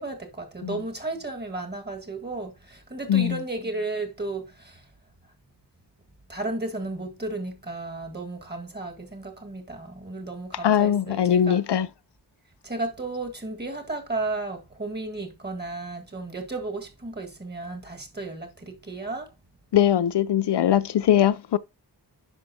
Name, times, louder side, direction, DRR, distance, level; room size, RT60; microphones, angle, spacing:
voice 1, 0.0-4.9 6.3-11.8 12.6-19.3, right 2 dB, 25° right, 1.8 m, -34 dB
voice 2, 3.1-3.4 10.6-11.9 19.7-21.6, left 10 dB, 75° left, 0.5 m, -21 dB
10.0 x 5.5 x 2.7 m
wide cardioid pair, 90°, 41 cm